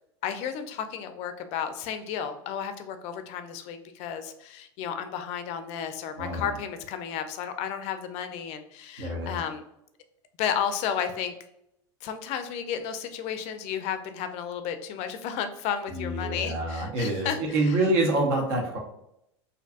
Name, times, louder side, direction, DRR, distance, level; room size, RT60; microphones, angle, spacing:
voice 1, 0.2-9.6 10.4-11.3 12.0-17.8, left 8 dB, 45° left, 9 dB, 0.4 m, -33 dB
voice 2, 6.2-6.5 9.0-9.4 15.9-18.8, right 2 dB, 60° right, 2 dB, 0.7 m, -26 dB
2.6 x 2.2 x 2.4 m, 0.79 s
hypercardioid pair, 100°, 15 cm